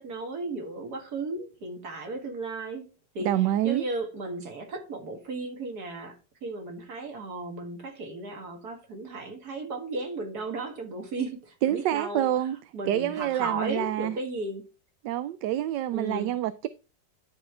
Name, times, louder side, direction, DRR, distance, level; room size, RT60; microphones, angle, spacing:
voice 1, 0.0-2.9 3.1-3.3 3.6-12.3 12.7-14.6 15.9-16.3, right 2 dB, 60° right, 2.3 m, -35 dB
voice 2, 3.2-3.9 11.6-12.6 12.8-14.2 15.0-16.7, right 12 dB, 75° right, 1.2 m, -27 dB
11.0 x 4.9 x 3.3 m
omnidirectional pair, 1.9 m